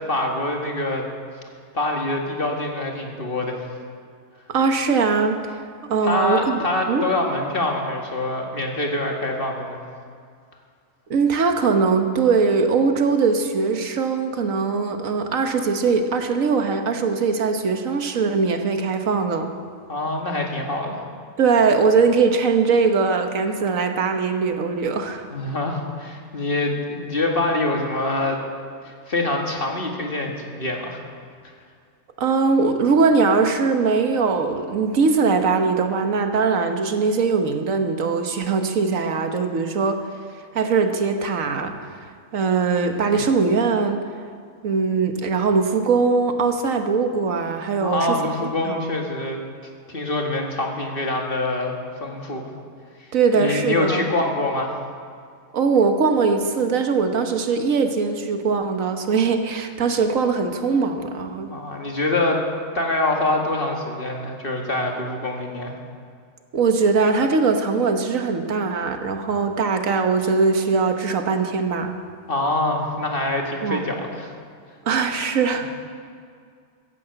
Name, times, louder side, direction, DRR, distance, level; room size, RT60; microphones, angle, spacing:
voice 1, 0.1-1.1 1.7-3.7 6.0-9.8 19.9-21.0 25.3-28.4 28.8-31.0 47.8-49.4 49.9-51.7 52.0-52.5 53.0-53.1 53.3-54.7 61.5-62.4 62.7-65.7 72.3-74.3, left 2 dB, 45° left, 1 dB, 2.1 m, -25 dB
voice 2, 4.5-5.6 5.9-7.0 11.1-19.5 21.4-25.3 32.2-40.0 40.5-42.1 42.3-44.0 44.6-48.2 48.6-48.9 53.1-54.1 55.5-61.5 66.5-71.9 73.6-73.8 74.8-75.7, right 4 dB, 90° right, 6 dB, 1.6 m, -21 dB
14.5 x 10.5 x 8.0 m, 2.2 s
omnidirectional pair, 1.4 m